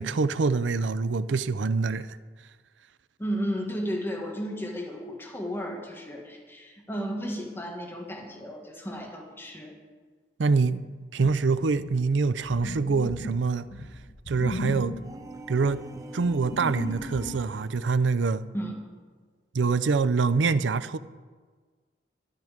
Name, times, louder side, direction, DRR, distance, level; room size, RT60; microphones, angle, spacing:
voice 1, 0.0-2.2 10.4-10.8 11.1-13.7 14.3-15.0 15.5-15.8 16.1-18.4 19.5-21.0, right 4 dB, 90° right, 0.5 m, -25 dB
voice 2, 3.2-9.8 18.5-18.8, equal, 15° left, 1.7 m, -33 dB
sound 1, 11.2-17.4, left 1 dB, 80° left, 1.3 m, -37 dB
sound 2, 14.9-17.9, right 1 dB, 20° right, 0.7 m, -44 dB
12.5 x 10.5 x 5.1 m
head